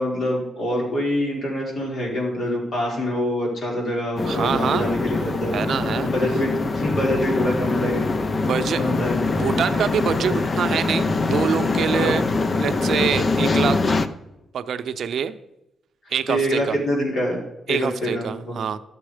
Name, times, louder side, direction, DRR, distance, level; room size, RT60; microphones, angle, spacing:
voice 1, 0.0-5.5 6.0-8.1 8.8-9.2 11.9-12.2 16.3-17.4 17.7-18.6, equal, 55° left, -2 dB, 4.3 m, -25 dB
sound 1, 4.2-14.1, left 3 dB, 35° left, 0.7 m, -23 dB
voice 2, 4.2-4.9 5.5-6.1 8.4-8.9 9.3-12.2 12.6-13.8 14.5-15.4 16.1-16.8 17.7-18.8, right 7 dB, 70° right, 11 dB, 0.6 m, -25 dB
12.5 x 7.0 x 5.0 m, 0.92 s
cardioid pair, 100°, 0 cm